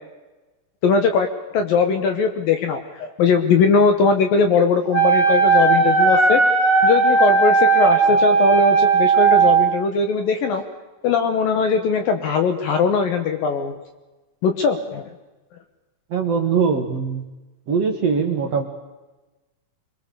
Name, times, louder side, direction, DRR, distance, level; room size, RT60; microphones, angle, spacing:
voice 1, 0.8-6.4 6.8-10.7 11.0-13.8 14.4-15.1, left 5 dB, 65° left, 7 dB, 2.7 m, -20 dB
Wind instrument woodwind instrument, 4.9-9.7, right 4 dB, 30° left, 4.9 m, -16 dB
voice 2, 16.1-17.2 17.7-18.6, right 6 dB, 55° right, 4 dB, 1.9 m, -21 dB
26.5 x 22.0 x 6.9 m, 1.1 s
omnidirectional pair, 5.0 m